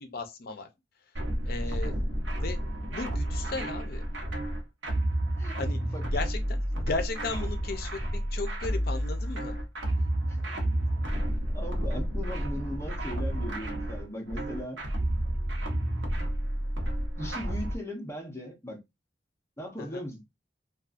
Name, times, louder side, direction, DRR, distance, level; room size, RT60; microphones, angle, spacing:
voice 1, 0.0-0.7 1.4-1.9 2.4-4.0 5.5-5.8 6.1-9.5 19.8-20.0, left 3 dB, 55° left, 0.6 m, -36 dB
sound 1, 1.2-17.8, right 1 dB, 75° right, 0.8 m, -30 dB
voice 2, 10.2-10.7 11.3-14.8 15.2-15.6 17.2-18.8 19.6-20.2, left 1 dB, 15° left, 0.6 m, -39 dB
2.6 x 2.3 x 2.4 m
head